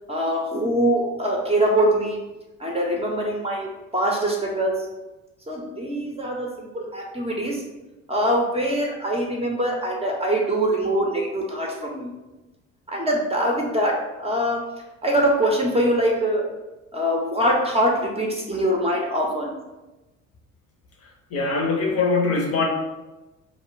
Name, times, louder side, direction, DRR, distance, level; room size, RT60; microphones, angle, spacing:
voice 1, 0.1-2.2 2.6-4.8 5.5-7.6 8.1-12.1 12.9-14.6 15.0-16.4 16.9-19.5, right 1 dB, 15° right, -1 dB, 0.6 m, -23 dB
voice 2, 21.0-22.6, left 4 dB, 40° left, 0 dB, 0.6 m, -23 dB
2.3 x 2.0 x 3.8 m, 1.0 s
hypercardioid pair, 55°, 39 cm